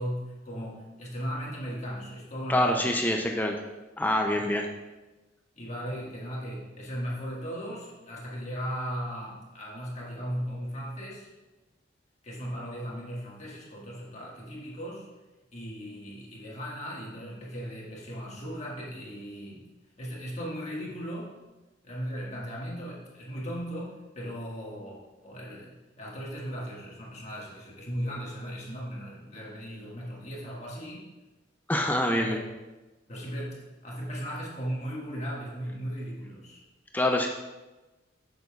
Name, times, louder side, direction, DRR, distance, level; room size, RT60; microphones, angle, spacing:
voice 1, 0.0-3.0 4.3-4.5 5.6-11.3 12.2-15.1 15.5-19.6 20.0-21.3 21.8-25.0 25.2-31.0 31.7-32.4 33.1-36.6, equal, 35° left, -4 dB, 1.6 m, -37 dB
voice 2, 2.5-3.6 4.0-4.7 31.7-32.4 36.9-37.3, left 1 dB, 10° left, 3 dB, 0.4 m, -25 dB
8.0 x 6.7 x 2.3 m, 1.1 s
head